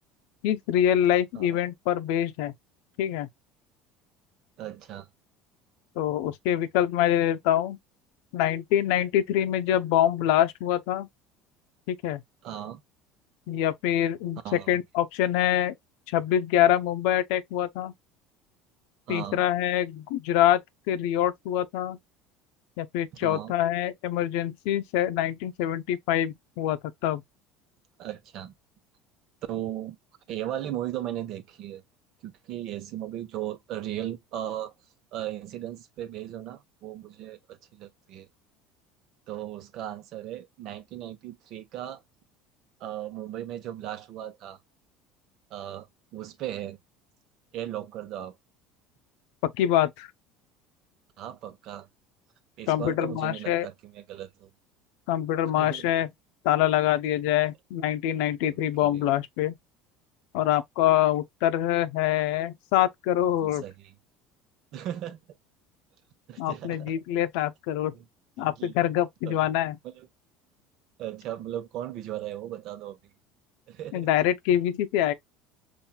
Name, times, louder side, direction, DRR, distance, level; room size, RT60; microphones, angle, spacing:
voice 1, 0.4-2.5 3.0-3.3 6.0-7.8 8.3-11.1 11.9-12.2 13.5-15.7 16.1-17.9 19.1-20.6 20.9-22.0 22.8-27.2 49.4-50.1 52.7-53.7 55.1-56.1 56.4-59.5 60.3-63.6 66.4-67.9 68.4-69.8 73.9-75.1, left 11 dB, 80° left, 0.6 m, -25 dB
voice 2, 4.6-5.1 12.4-12.8 14.4-14.8 19.1-19.4 23.2-23.5 28.0-28.5 29.5-30.0 30.3-31.8 32.2-34.7 35.1-38.3 39.3-42.0 42.8-44.6 45.5-45.9 46.1-46.8 47.5-48.4 51.2-51.9 52.6-54.5 55.6-55.9 58.5-59.0 63.4-63.9 64.7-65.2 66.3-66.9 67.9-68.0 68.4-68.7 69.2-69.4 70.0-70.1 71.0-73.0 73.7-74.1, right 12 dB, 55° right, 0.9 m, -37 dB
5.6 x 2.6 x 2.3 m
cardioid pair, 125°, 0 cm